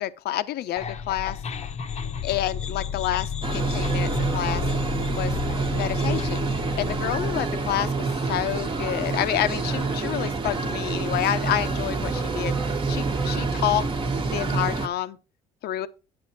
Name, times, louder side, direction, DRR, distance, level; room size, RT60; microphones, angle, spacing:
voice 1, 0.0-1.4 2.2-4.6 5.2-6.5 6.8-12.6 12.9-13.9 14.3-15.2 15.6-15.9, left 12 dB, 70° left, 0.8 m, -28 dB
sound 1, 0.8-7.9, left 8 dB, 40° left, 0.8 m, -32 dB
sound 2, 3.4-14.9, right 4 dB, 30° right, 1.1 m, -27 dB
9.7 x 7.8 x 4.1 m
cardioid pair, 110°, 17 cm